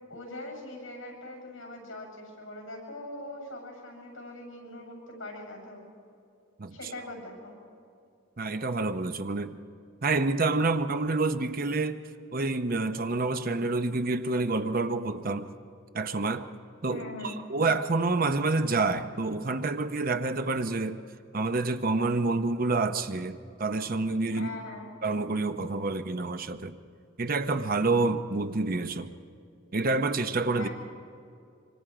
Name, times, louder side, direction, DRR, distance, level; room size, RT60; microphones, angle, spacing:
voice 1, 0.1-5.8 6.7-7.5 16.9-17.4 24.3-24.9 30.6-30.7, left 2 dB, 70° left, 7.6 m, -41 dB
voice 2, 8.4-9.6 10.0-12.0 12.3-15.5 15.9-16.5 16.8-17.0 17.5-21.0 21.3-24.5 25.0-26.8 27.2-29.2 29.7-30.7, right 3 dB, 45° right, 0.8 m, -28 dB
25.5 x 25.5 x 4.9 m
head